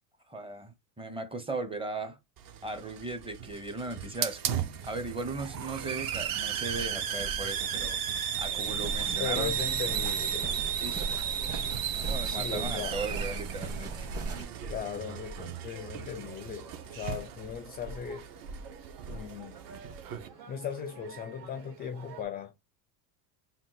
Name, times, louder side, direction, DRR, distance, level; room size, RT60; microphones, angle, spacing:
voice 1, 0.3-2.2 2.6-9.6 10.8-11.7 12.1-14.1, right 2 dB, 10° right, 0.7 m, -38 dB
Hiss, 2.4-20.3, right 9 dB, 45° right, 0.8 m, -35 dB
sound 1, 8.5-22.2, right 7 dB, 80° right, 1.7 m, -52 dB
sound 2, 8.6-14.4, right 3 dB, 30° right, 1.5 m, -38 dB
voice 2, 9.2-10.6 12.2-13.1 14.7-18.3 19.1-19.6 20.5-22.5, left 7 dB, 20° left, 0.4 m, -38 dB
3.8 x 2.3 x 3.9 m
supercardioid pair, 115°, 48 cm